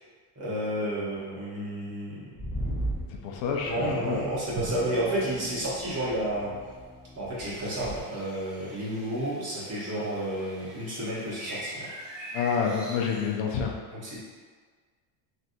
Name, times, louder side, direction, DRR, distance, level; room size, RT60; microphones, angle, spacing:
voice 1, 0.4-2.3 3.6-6.5 7.1-11.9 13.9-14.3, right 1 dB, 30° right, -8 dB, 1.1 m, -31 dB
sound 1, 2.4-8.0, right 1 dB, 20° left, 0.8 m, -38 dB
voice 2, 3.1-4.2 12.3-13.7, left 6 dB, 65° left, 0 dB, 0.6 m, -28 dB
Drum, 4.6-6.9, right 5 dB, 65° right, 1.1 m, -40 dB
sound 2, 7.4-13.3, right 1 dB, ahead, 0.3 m, -43 dB
3.3 x 2.6 x 2.6 m, 1.5 s
cardioid pair, 130°, 50 cm